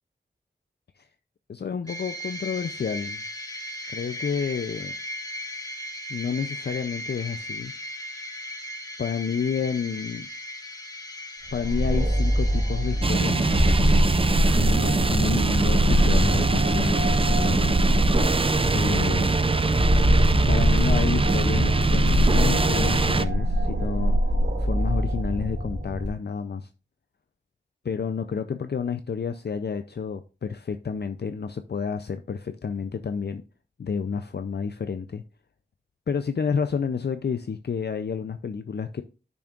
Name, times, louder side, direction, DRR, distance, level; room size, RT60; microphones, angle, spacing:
voice 1, 1.5-3.2 3.9-5.0 6.1-7.7 9.0-10.3 11.5-13.7 14.6-17.8 18.7-19.3 20.5-24.2 24.6-26.7 27.8-33.4 33.8-35.2 36.1-39.0, left 6 dB, 65° left, 0.4 m, -30 dB
sound 1, 1.9-14.7, equal, 20° left, 1.3 m, -37 dB
sound 2, 11.5-26.1, equal, 70° right, 2.4 m, -23 dB
sound 3, 13.0-23.2, right 3 dB, 30° right, 0.5 m, -23 dB
10.5 x 6.0 x 2.4 m
wide cardioid pair, 70°, 18 cm